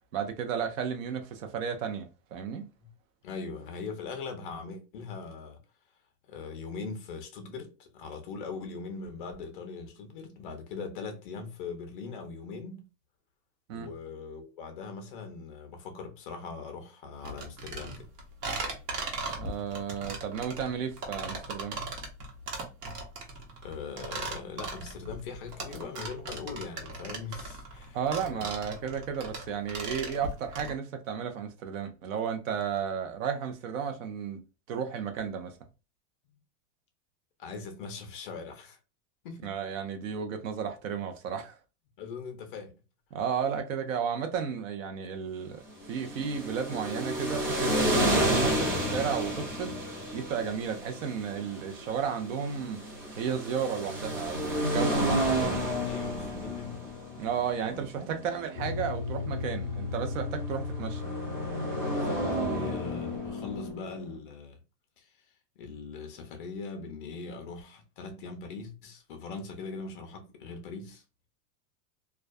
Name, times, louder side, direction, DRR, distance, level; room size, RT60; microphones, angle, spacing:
voice 1, 0.1-2.7 13.7-13.9 19.3-21.8 27.9-34.4 34.7-35.6 39.4-41.6 43.1-49.8 50.1-52.8 53.2-55.6 57.2-61.0, right 7 dB, 55° right, 0.6 m, -33 dB
voice 2, 3.2-5.6 6.3-12.9 13.7-18.1 23.6-28.0 28.3-28.5 37.4-38.8 39.2-39.5 42.0-42.7 55.9-56.9 57.7-58.2 61.9-64.6 65.0-65.1 65.6-71.0, left 4 dB, 35° left, 0.5 m, -41 dB
sound 1, 17.2-30.7, right 3 dB, 85° right, 1.1 m, -38 dB
sound 2, 45.8-63.7, equal, 25° right, 0.8 m, -31 dB
sound 3, 58.5-64.2, left 4 dB, 5° left, 0.7 m, -37 dB
2.3 x 2.2 x 2.4 m
supercardioid pair, 165°, 47 cm